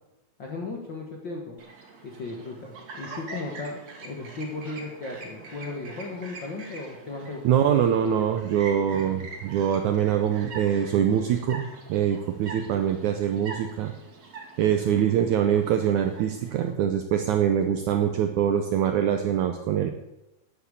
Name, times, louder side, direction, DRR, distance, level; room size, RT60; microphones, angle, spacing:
voice 1, 0.4-1.6 2.0-7.7, left 3 dB, 55° left, 0 dB, 1.2 m, -36 dB
Chirp tweet, 1.6-16.7, right 3 dB, 50° right, 3.4 m, -44 dB
voice 2, 7.4-13.9 14.6-19.9, right 9 dB, 80° right, 6 dB, 1.7 m, -24 dB
10.0 x 8.9 x 8.3 m, 0.92 s
omnidirectional pair, 4.4 m